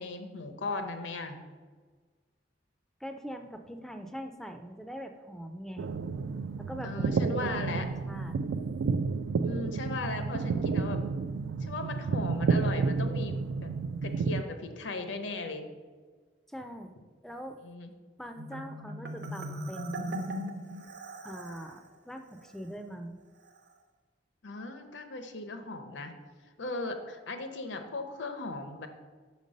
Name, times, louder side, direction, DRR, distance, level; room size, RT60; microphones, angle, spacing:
voice 1, 0.0-1.5 6.8-7.9 9.4-11.0 11.6-13.7 14.0-15.6 17.6-17.9 24.4-26.1 26.6-28.9, left 3 dB, 80° left, 7 dB, 0.8 m, -37 dB
voice 2, 3.0-5.9 6.6-7.6 8.1-8.4 16.5-16.9 17.2-17.6 18.2-20.2 21.2-23.2, equal, ahead, 6 dB, 0.3 m, -42 dB
sound 1, 5.8-14.4, right 4 dB, 90° right, 0.3 m, -30 dB
Marimba xylophone, 18.4-21.7, right 1 dB, 65° right, 0.7 m, -38 dB
5.7 x 5.2 x 5.2 m, 1.5 s
head